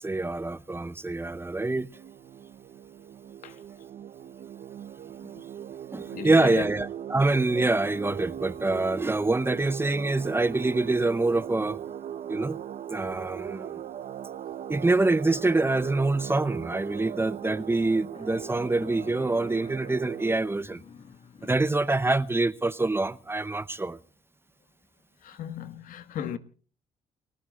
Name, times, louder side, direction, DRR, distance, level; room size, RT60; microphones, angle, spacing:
voice 1, 0.0-1.9 5.9-11.8 12.3-12.6 12.9-13.8 14.7-20.8 21.4-24.0, right 2 dB, 15° right, 0.8 m, -25 dB
sound 1, 1.9-20.4, right 10 dB, 65° right, 0.9 m, -39 dB
voice 2, 6.1-6.7 25.2-26.4, left 10 dB, 70° left, 1.6 m, -36 dB
sound 2, 17.4-21.8, left 6 dB, 50° left, 1.8 m, -50 dB
30.0 x 15.0 x 2.4 m
supercardioid pair, 70°, 14 cm